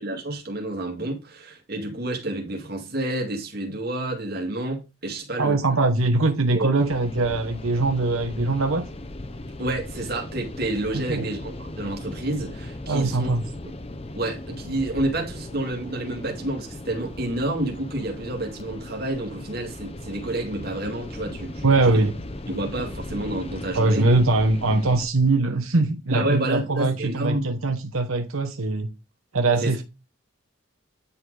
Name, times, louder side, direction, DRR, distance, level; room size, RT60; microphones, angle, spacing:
voice 1, 0.0-5.8 6.5-6.7 9.6-13.3 14.1-22.0 22.5-24.1 26.1-27.6 29.6-29.8, right 1 dB, 45° right, 2.3 m, -29 dB
voice 2, 5.4-8.9 10.9-11.3 12.9-13.4 21.6-22.2 23.7-28.9 29.3-29.8, right 2 dB, 85° right, 1.2 m, -22 dB
sound 1, 6.8-25.1, left 1 dB, 30° left, 0.7 m, -37 dB
10.0 x 4.2 x 4.9 m
head